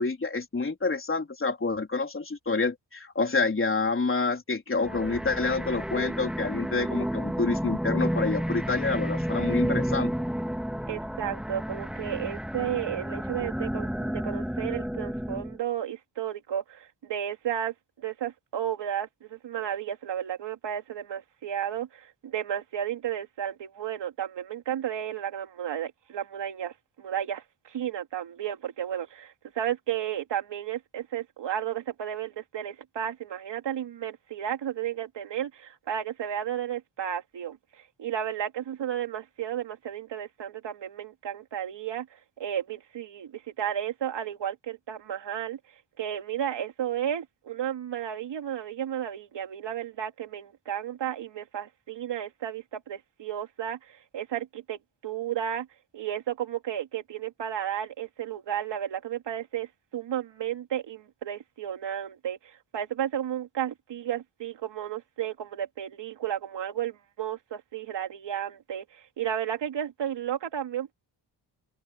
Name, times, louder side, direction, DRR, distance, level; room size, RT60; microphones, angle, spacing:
voice 1, 0.0-10.1, left 3 dB, 30° left, 4.0 m, -28 dB
sound 1, 4.8-15.6, equal, ahead, 2.7 m, -31 dB
voice 2, 10.8-45.6 46.0-55.7 55.9-70.9, right 10 dB, 80° right, 3.4 m, -33 dB
cardioid pair, 95°, 42 cm